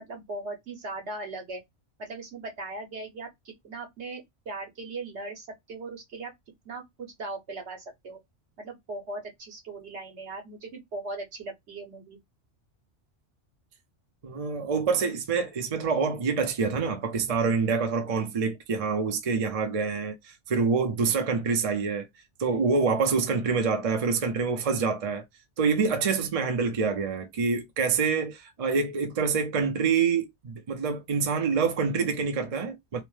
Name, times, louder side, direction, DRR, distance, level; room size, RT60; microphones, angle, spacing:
voice 1, 0.0-1.6 2.0-6.3 6.6-8.2 8.6-12.2, right 2 dB, 65° right, 1.3 m, -39 dB
voice 2, 14.2-22.1 22.4-25.2 25.6-33.0, right 5 dB, 40° right, 0.5 m, -26 dB
2.9 x 2.1 x 3.1 m
omnidirectional pair, 1.2 m